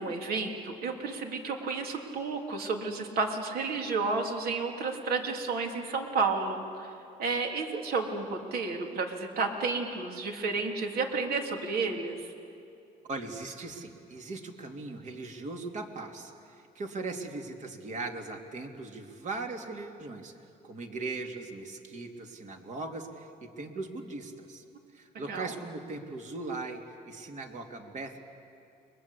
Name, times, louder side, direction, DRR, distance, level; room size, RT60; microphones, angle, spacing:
voice 1, 0.0-6.9 7.2-12.3 25.3-25.5, right 4 dB, 65° right, 2 dB, 3.5 m, -31 dB
voice 2, 13.1-20.3 20.6-24.6 24.9-28.3, right 3 dB, 45° right, 3 dB, 3.0 m, -39 dB
30.0 x 23.0 x 8.4 m, 2.7 s
cardioid pair, 110°, 17 cm